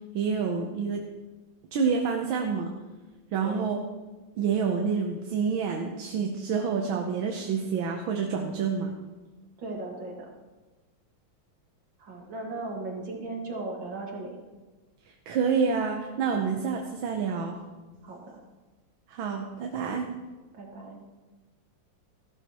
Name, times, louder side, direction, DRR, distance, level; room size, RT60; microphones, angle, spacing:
voice 1, 0.1-1.0 1.7-2.7 3.3-3.8 4.4-8.9 15.3-17.6 19.1-20.2, right 6 dB, 90° right, 2 dB, 1.7 m, -28 dB
voice 2, 9.6-10.3 12.0-14.4 18.0-18.4 20.5-21.0, right 2 dB, 70° right, 0 dB, 2.7 m, -37 dB
14.5 x 12.5 x 3.0 m, 1.2 s
omnidirectional pair, 2.1 m